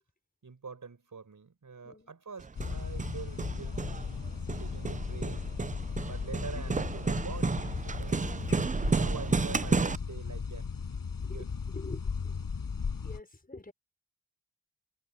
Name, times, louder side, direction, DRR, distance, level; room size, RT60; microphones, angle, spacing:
voice 1, 0.4-4.3 4.6-5.5 6.1-8.2 8.8-10.7 11.2-11.5, right 5 dB, 65° right, 5.3 m, -45 dB
Hammer, 2.4-10.0, right 4 dB, 25° right, 0.4 m, -32 dB
sound 1, 2.6-13.2, left 5 dB, 80° left, 6.6 m, -36 dB
voice 2, 11.7-12.3 13.0-13.7, left 2 dB, 25° left, 5.7 m, -45 dB
wide cardioid pair, 95°, 34 cm